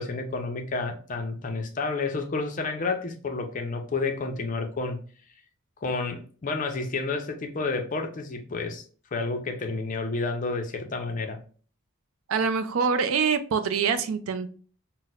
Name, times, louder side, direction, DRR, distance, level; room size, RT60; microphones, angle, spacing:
voice 1, 0.0-5.0 5.8-8.8 9.1-11.4, left 3 dB, 35° left, 0.4 m, -30 dB
voice 2, 12.3-14.5, right 6 dB, 65° right, 0.4 m, -25 dB
4.0 x 2.0 x 2.4 m
head